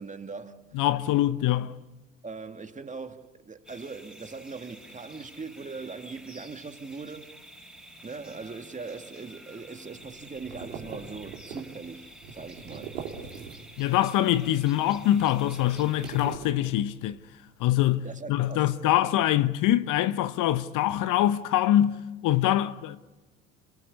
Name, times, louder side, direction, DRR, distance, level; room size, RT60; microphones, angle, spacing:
voice 1, 0.0-0.8 2.2-7.3 8.0-13.8 17.9-19.1, right 4 dB, 20° right, 2.2 m, -41 dB
voice 2, 0.7-1.7 13.8-17.2 17.6-23.0, left 13 dB, 50° left, 1.0 m, -24 dB
sound 1, 3.6-16.4, right 1 dB, ahead, 4.4 m, -49 dB
sound 2, 10.0-13.9 14.2-17.3, right 7 dB, 70° right, 3.7 m, -43 dB
28.0 x 22.5 x 8.5 m
figure-of-eight pair, 65°, 41 cm